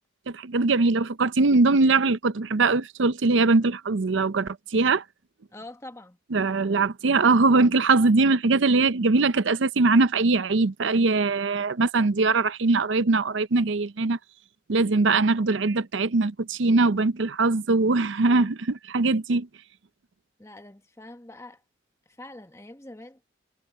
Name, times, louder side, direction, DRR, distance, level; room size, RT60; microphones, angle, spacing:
voice 1, 0.3-5.0 6.3-14.2 14.7-19.5, right 3 dB, 75° right, 0.6 m, -21 dB
voice 2, 5.5-6.2 20.4-21.6 22.1-23.2, left 1 dB, 15° left, 1.4 m, -44 dB
head